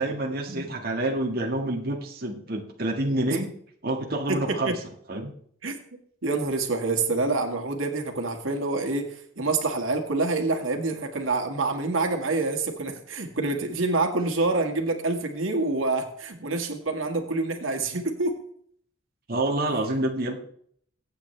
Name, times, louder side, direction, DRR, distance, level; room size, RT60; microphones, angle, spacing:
voice 1, 0.0-3.5 3.8-4.7 5.1-5.3 19.3-20.4, right 1 dB, 50° right, 0 dB, 1.8 m, -27 dB
voice 2, 4.3-4.8 5.6-5.8 6.2-18.3, right 3 dB, 90° right, 3 dB, 2.0 m, -27 dB
24.0 x 8.6 x 3.4 m, 0.63 s
head